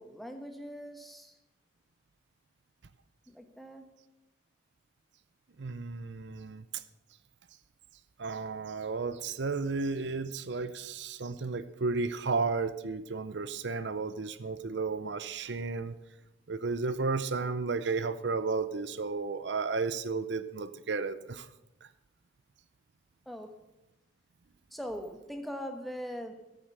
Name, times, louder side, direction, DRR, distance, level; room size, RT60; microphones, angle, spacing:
voice 1, 0.0-1.3 3.3-4.0 23.3-23.6 24.7-26.4, equal, ahead, 1.2 m, -41 dB
voice 2, 5.6-6.8 8.2-16.0 16.5-21.5, right 4 dB, 70° right, 0.6 m, -33 dB
14.0 x 8.9 x 6.6 m
head